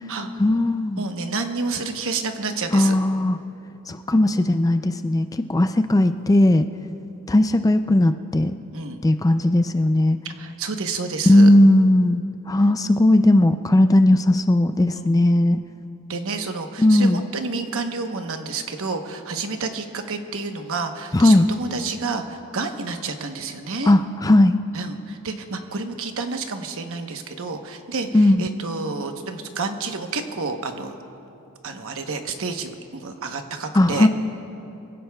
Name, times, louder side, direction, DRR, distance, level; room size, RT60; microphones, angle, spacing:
voice 1, 0.4-1.0 2.7-3.4 3.9-6.7 7.3-8.5 9.0-10.2 11.3-12.2 12.5-15.6 16.8-17.2 21.1-21.5 23.9-24.6 28.1-28.5 33.7-34.1, left 1 dB, 15° left, 9 dB, 0.3 m, -17 dB
voice 2, 1.0-2.9 8.7-9.0 10.2-11.5 14.9-15.1 16.1-23.9 24.7-31.0 31.6-34.1, right 4 dB, 65° right, 6 dB, 1.0 m, -29 dB
24.5 x 16.0 x 2.3 m, 2.9 s
head